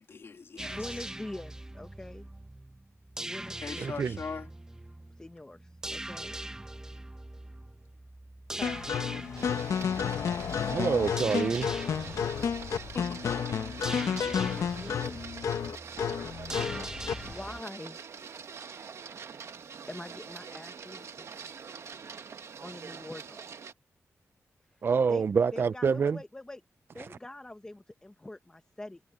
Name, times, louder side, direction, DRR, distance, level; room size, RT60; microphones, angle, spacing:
voice 1, 0.0-1.1 3.6-4.5 12.9-13.6 14.2-14.3, left 5 dB, 55° left, 2.7 m, -41 dB
sound 1, 0.6-17.6, right 1 dB, 10° right, 1.1 m, -42 dB
voice 2, 0.7-2.3 3.2-3.9 5.2-6.3 8.5-8.8 14.1-15.2 17.2-18.0 19.9-21.5 22.6-23.5 25.1-25.3 25.5-26.6 26.9-29.0, left 1 dB, 15° left, 1.1 m, -44 dB
voice 3, 3.8-4.2 10.7-11.7 24.8-26.2 27.0-27.1, right 5 dB, 45° right, 0.4 m, -27 dB
sound 2, 8.6-17.3, left 7 dB, 85° left, 1.2 m, -31 dB
Printer, 9.4-23.7, right 6 dB, 65° right, 1.6 m, -44 dB
wide cardioid pair, 125°, 5 cm